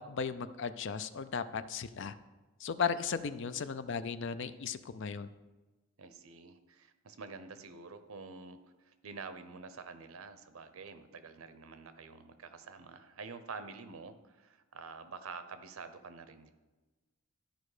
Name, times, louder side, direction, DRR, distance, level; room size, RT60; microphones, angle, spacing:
voice 1, 0.1-2.1 2.6-5.3, left 6 dB, 60° left, 12 dB, 0.4 m, -36 dB
voice 2, 6.0-8.6 8.8-16.5, right 4 dB, 80° right, 10 dB, 0.7 m, -48 dB
12.0 x 5.2 x 4.9 m, 1.2 s
head